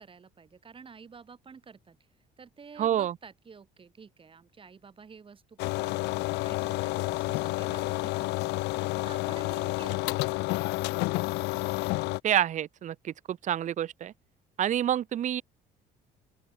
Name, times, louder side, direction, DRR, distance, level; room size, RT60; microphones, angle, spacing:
voice 1, 0.0-2.0 2.4-8.7 9.0-10.3 12.0-12.2, right 5 dB, 30° right, 3.4 m, -50 dB
voice 2, 2.8-3.1 12.2-14.1 14.6-15.4, right 11 dB, 45° right, 0.7 m, -28 dB
sound 1, 5.6-12.2, left 22 dB, 90° left, 0.8 m, -30 dB
open air
cardioid pair, 110°, 17 cm